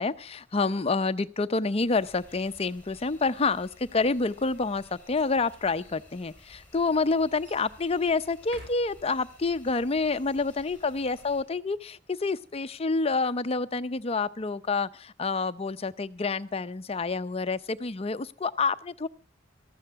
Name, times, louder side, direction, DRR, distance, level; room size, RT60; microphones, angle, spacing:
voice 1, 0.0-19.1, left 4 dB, 35° left, 13 dB, 0.6 m, -28 dB
sound 1, 1.9-11.4, left 1 dB, 10° left, 3.8 m, -55 dB
sound 2, 4.2-5.4 6.2-6.3 7.4-7.7 8.4-9.4 16.5-17.7, equal, 60° right, 5.5 m, -54 dB
18.5 x 14.0 x 3.5 m, 0.38 s
head